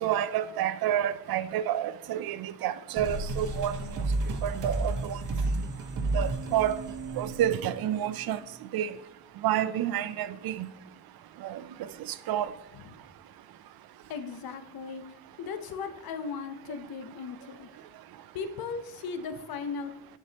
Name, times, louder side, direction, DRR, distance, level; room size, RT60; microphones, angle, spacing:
voice 1, 0.0-3.8 4.4-5.2 6.1-6.8 7.2-8.4 8.7-8.9 9.4-10.7 11.4-11.6 12.3-12.5, right 11 dB, 85° right, 0.5 m, -29 dB
sound 1, 3.0-8.3, right 2 dB, 60° right, 1.1 m, -32 dB
voice 2, 14.1-15.0 15.4-17.7 18.3-19.9, left 5 dB, 80° left, 0.7 m, -37 dB
10.0 x 4.7 x 2.8 m
cardioid pair, 110°, 36 cm